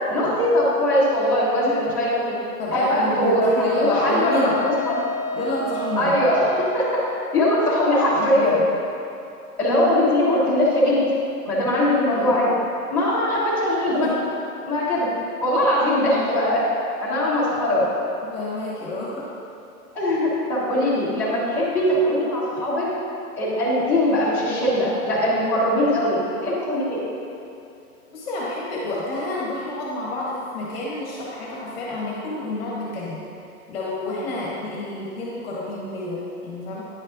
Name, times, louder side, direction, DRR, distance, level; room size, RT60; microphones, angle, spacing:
voice 1, 0.1-2.4 2.7-4.6 4.8-5.0 6.0-7.0 7.3-8.6 9.6-11.0 11.4-12.5 12.9-14.1 14.6-15.1 15.4-16.6 17.0-17.8 19.9-22.9 23.4-27.0, left 1 dB, 5° left, -13 dB, 1.4 m, -21 dB
voice 2, 2.6-4.6 5.3-6.2 8.2-8.6 11.9-12.3 14.0-14.2 18.2-19.3 28.1-33.3 33.7-36.8, left 2 dB, 40° left, -6 dB, 1.4 m, -29 dB
Wind instrument woodwind instrument, 3.6-7.1, left 1 dB, 10° right, 1.0 m, -30 dB
10.0 x 5.3 x 2.6 m, 2.7 s
hypercardioid pair, 175°, 45 cm